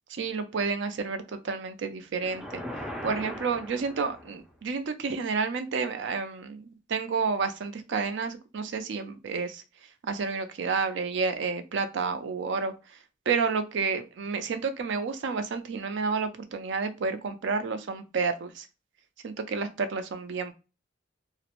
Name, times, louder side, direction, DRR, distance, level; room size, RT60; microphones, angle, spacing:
voice 1, 0.1-2.6 3.0-13.0 13.3-18.7 19.2-20.5, right 5 dB, 70° right, 8 dB, 0.4 m, -30 dB
sound 1, 2.2-4.5, left 1 dB, 5° right, 0.4 m, -39 dB
2.4 x 2.0 x 2.8 m, 0.30 s
head